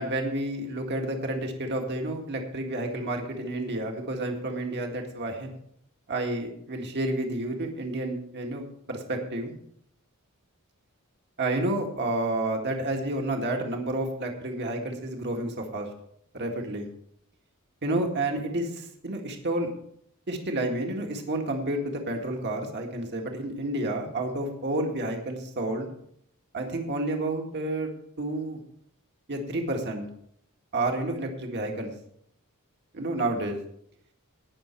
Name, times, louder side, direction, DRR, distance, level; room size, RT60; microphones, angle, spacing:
voice 1, 0.0-5.6 6.1-8.6 8.9-9.5 11.4-15.9 16.3-16.9 17.8-19.7 20.3-25.9 26.5-27.9 28.2-28.6 29.3-30.1 30.7-31.9 32.9-33.6, right 1 dB, 50° right, 2 dB, 1.9 m, -30 dB
18.5 x 6.4 x 4.5 m, 0.69 s
head